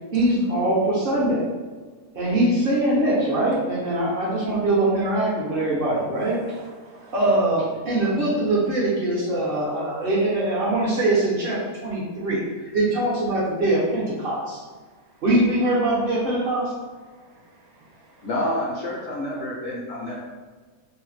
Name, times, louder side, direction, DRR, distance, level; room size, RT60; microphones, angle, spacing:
voice 1, 0.1-1.4 2.1-6.4 7.1-14.6 15.2-16.7, right 1 dB, 50° right, 0.7 m, -22 dB
voice 2, 6.1-7.2 14.9-15.2 17.0-18.3 20.1-20.2, right 2 dB, 85° right, 1.1 m, -51 dB
voice 3, 18.2-20.2, left 1 dB, 65° left, 0.7 m, -28 dB
2.7 x 2.1 x 3.1 m
omnidirectional pair, 1.5 m